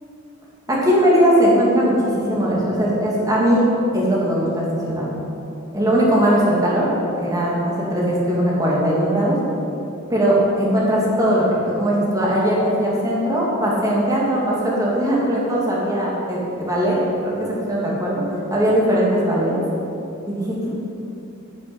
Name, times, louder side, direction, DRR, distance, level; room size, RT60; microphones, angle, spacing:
voice 1, 0.7-2.0 2.2-3.6 3.9-5.1 5.7-6.9 7.2-9.4 10.1-17.3 17.7-18.2 18.5-19.6 20.3-20.7, equal, 15° right, -5 dB, 2.9 m, -19 dB
9.9 x 7.3 x 8.8 m, 2.7 s
head